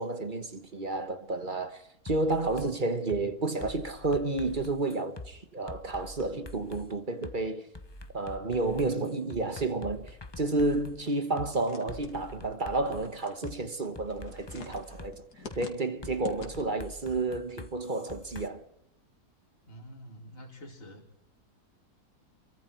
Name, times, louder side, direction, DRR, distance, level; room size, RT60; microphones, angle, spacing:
voice 1, 0.0-7.7 8.1-15.2 15.5-18.6, right 2 dB, 35° right, 1.3 m, -31 dB
sound 1, 2.1-2.7 3.1-3.2 3.6-5.3 5.7-6.9 7.2-7.3 7.7-11.0 11.4-11.5 11.9-13.5 13.9-15.1 15.5-15.6 16.0-18.5, left 2 dB, 20° left, 0.8 m, -45 dB
sound 2, 11.0-16.9, left 5 dB, 75° left, 2.8 m, -49 dB
voice 2, 19.6-21.0, equal, 35° left, 3.2 m, -47 dB
28.5 x 23.5 x 4.6 m
omnidirectional pair, 1.7 m